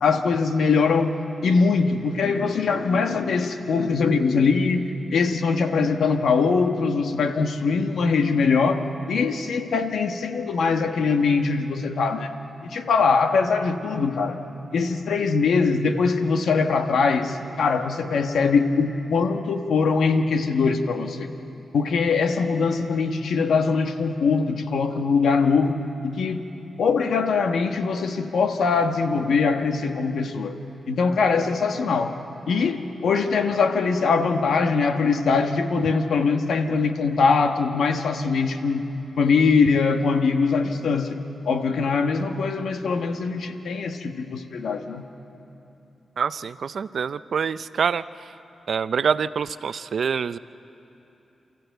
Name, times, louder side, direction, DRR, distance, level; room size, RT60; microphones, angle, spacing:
voice 1, 0.0-1.1 1.4-8.8 9.1-12.3 12.6-14.4 14.7-21.3 21.7-25.8 26.0-26.4 26.8-30.5 30.9-32.2 32.5-38.8 39.2-41.2 41.4-45.0, left 4 dB, 80° left, 6 dB, 1.3 m, -22 dB
voice 2, 46.2-48.0 48.7-50.4, right 6 dB, 65° right, 15 dB, 0.4 m, -25 dB
28.5 x 14.5 x 8.0 m, 3.0 s
cardioid pair, 80°, 0 cm